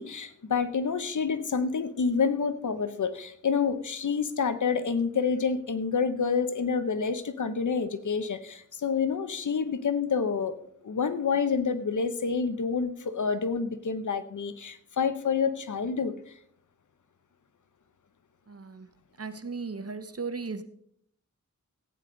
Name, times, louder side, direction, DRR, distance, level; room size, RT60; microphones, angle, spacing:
voice 1, 0.0-10.5 10.8-16.1, left 5 dB, 75° left, 12 dB, 1.0 m, -28 dB
voice 2, 18.5-18.9 19.2-20.6, right 4 dB, 50° right, 9 dB, 1.1 m, -36 dB
15.0 x 9.4 x 3.9 m, 0.67 s
wide cardioid pair, 70°, 30 cm